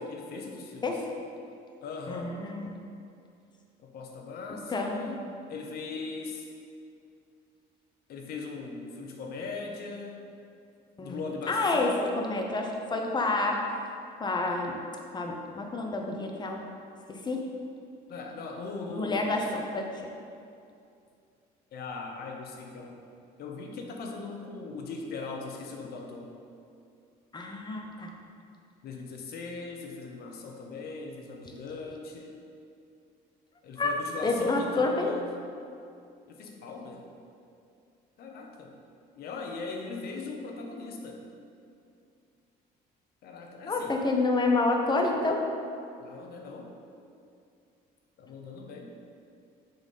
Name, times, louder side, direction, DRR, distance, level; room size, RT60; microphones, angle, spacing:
voice 1, 0.1-1.0 1.8-2.3 3.8-6.5 8.1-10.2 11.0-12.4 18.1-19.5 21.7-23.0 23.4-26.3 28.8-32.4 33.6-35.4 36.3-37.1 38.2-38.7 39.2-41.2 43.2-44.0 46.0-46.7 48.2-48.9, left 4 dB, 65° left, 2 dB, 1.0 m, -39 dB
voice 2, 2.1-2.7 4.7-5.2 11.0-11.9 12.2-13.6 14.2-14.8 15.1-16.6 17.1-17.4 18.9-19.8 27.3-28.1 33.8-33.9 34.2-35.2 43.7-45.4, left 3 dB, 25° left, 2 dB, 0.9 m, -28 dB
6.8 x 4.2 x 5.4 m, 2.5 s
cardioid pair, 110°, 17 cm